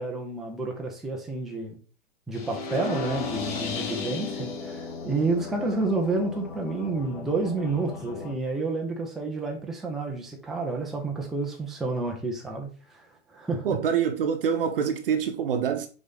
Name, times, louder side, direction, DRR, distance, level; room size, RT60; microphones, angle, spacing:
voice 1, 0.0-1.8 2.3-13.7, right 3 dB, ahead, 0.4 m, -30 dB
sound 1, 2.3-8.3, left 4 dB, 40° left, 1.5 m, -35 dB
voice 2, 13.6-15.9, right 7 dB, 50° right, 0.8 m, -25 dB
6.1 x 4.1 x 3.8 m
figure-of-eight pair, 115°, 36 cm